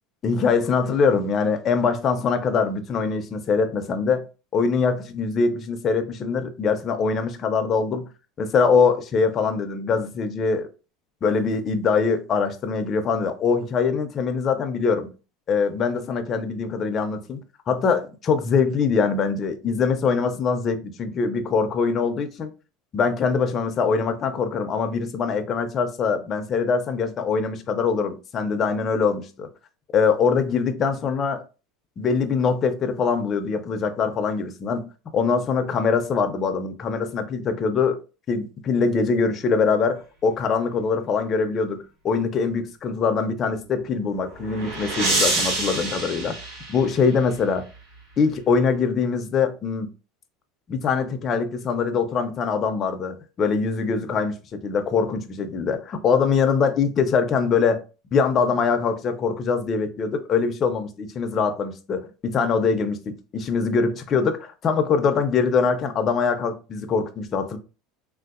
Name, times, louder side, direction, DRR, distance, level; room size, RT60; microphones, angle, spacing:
voice 1, 0.2-4.2 4.5-8.1 8.4-10.7 11.2-15.1 15.5-17.4 17.7-22.5 22.9-29.5 29.9-31.4 32.0-38.0 38.3-46.4 46.7-47.7 48.2-49.9 50.7-57.8 58.1-67.6, left 5 dB, 25° left, 0.4 m, -23 dB
sound 1, 43.9-47.3, right 2 dB, 60° right, 1.4 m, -27 dB
3.5 x 2.6 x 2.4 m
cardioid pair, 175°, 0 cm